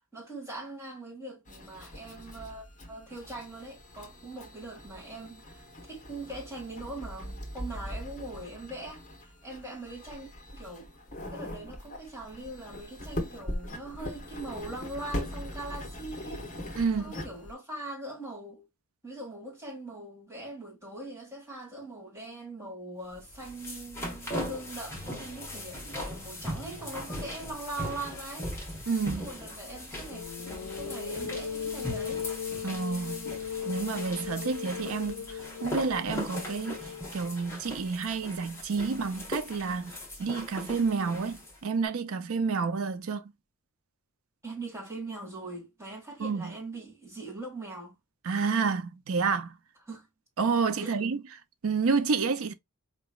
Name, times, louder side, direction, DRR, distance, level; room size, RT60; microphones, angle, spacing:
voice 1, 0.1-10.9 11.3-16.5 17.0-18.7 19.0-28.5 28.7-28.9 29.2-32.2 32.6-32.7 44.4-48.0 49.9-50.1 50.8-51.0, right 2 dB, 15° right, 2.0 m, -41 dB
sound 1, 1.5-17.5, left 1 dB, 35° left, 1.0 m, -41 dB
voice 2, 16.8-17.1 28.9-29.3 32.6-33.2 33.6-35.3 35.6-36.7 37.1-39.9 40.2-43.2 46.2-46.5 48.3-49.5 50.4-51.2 51.6-52.5, right 5 dB, 75° right, 0.5 m, -29 dB
sound 2, 23.2-41.6, left 1 dB, 10° left, 1.2 m, -39 dB
sound 3, 30.1-37.5, left 7 dB, 75° left, 0.4 m, -38 dB
4.6 x 3.0 x 2.3 m
head